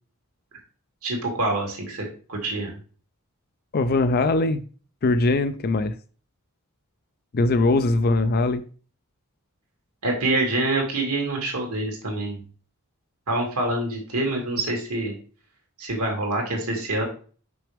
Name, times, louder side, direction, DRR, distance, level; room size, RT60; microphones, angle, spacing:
voice 1, 1.0-2.7 10.0-12.4 13.3-15.1 15.8-17.0, right 2 dB, 80° right, 2.4 m, -26 dB
voice 2, 3.7-4.6 5.0-5.9 7.3-8.6, left 2 dB, 45° left, 0.4 m, -21 dB
6.0 x 5.9 x 3.4 m
head